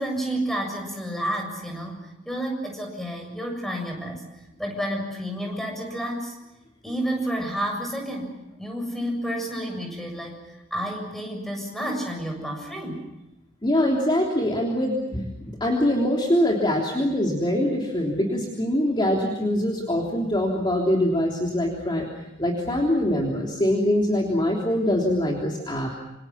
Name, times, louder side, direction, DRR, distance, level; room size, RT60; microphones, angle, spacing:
voice 1, 0.0-4.2 4.6-6.4 6.8-10.4 10.7-13.0, equal, ahead, 2 dB, 7.3 m, -30 dB
voice 2, 13.6-22.1 22.4-25.9, left 1 dB, 25° left, -1 dB, 3.4 m, -23 dB
28.0 x 27.5 x 5.8 m, 0.96 s
head